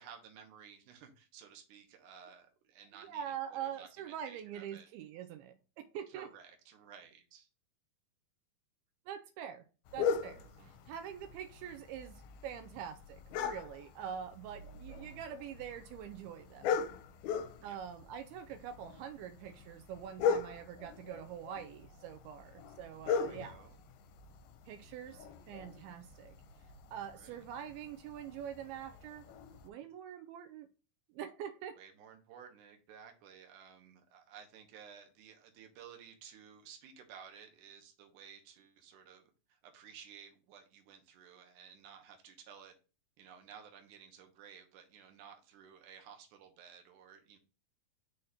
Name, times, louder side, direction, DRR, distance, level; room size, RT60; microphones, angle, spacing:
voice 1, 0.0-4.9 6.1-7.5 10.4-10.7 17.6-17.8 23.1-23.8 25.1-25.2 27.1-27.4 31.8-39.2 39.5-42.8 43.2-47.4, right 7 dB, 65° right, 2.3 m, -55 dB
voice 2, 2.9-6.3 9.1-9.6 9.9-16.8 17.6-23.6 24.7-26.3 26.9-29.2 29.6-30.7 31.1-31.8, right 9 dB, 85° right, 2.5 m, -44 dB
sound 1, 9.9-29.7, left 6 dB, 85° left, 2.5 m, -40 dB
6.5 x 2.8 x 5.6 m
omnidirectional pair, 4.4 m